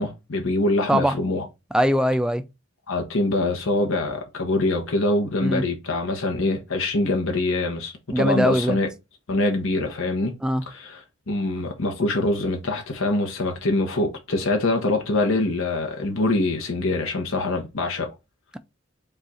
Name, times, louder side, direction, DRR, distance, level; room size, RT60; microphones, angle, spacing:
voice 1, 0.0-1.4 2.9-8.9 9.3-10.4 10.7-11.0 11.3-18.1, left 2 dB, 80° left, 0.9 m, -24 dB
voice 2, 1.7-2.4 5.4-5.6 8.1-8.8 10.4-10.6, equal, 5° right, 0.3 m, -21 dB
5.3 x 2.4 x 4.1 m
head